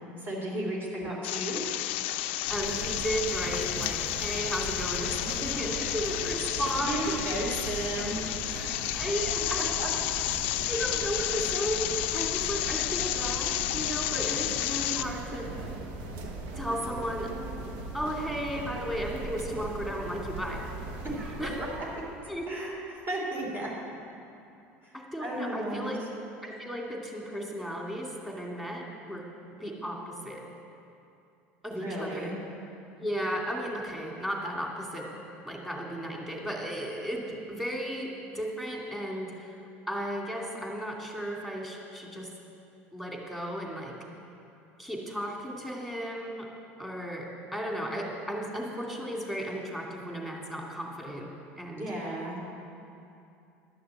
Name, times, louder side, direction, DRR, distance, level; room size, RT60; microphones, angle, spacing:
voice 1, 0.2-1.6 6.8-8.8 9.6-9.9 21.1-21.7 22.2-23.7 24.8-24.9 25.2-26.0 31.7-32.4 51.8-52.4, right 1 dB, 35° right, -4 dB, 3.4 m, -34 dB
sound 1, 1.2-15.0, left 14 dB, 85° left, 0.5 m, -31 dB
voice 2, 2.5-7.2 8.9-9.6 10.7-15.5 16.5-17.3 17.9-20.6 21.4-21.6 22.3-22.5 24.9-26.0 26.4-29.3 29.6-30.4 31.6-32.3 33.0-35.1 35.5-39.5 39.9-42.3 42.9-43.9 44.8-46.5 46.8-51.3 51.6-51.8, equal, 5° right, -1 dB, 2.4 m, -34 dB
sound 2, 2.5-22.2, right 2 dB, 75° right, 1.4 m, -39 dB
11.5 x 6.8 x 7.8 m, 2.6 s
supercardioid pair, 100°, 6 cm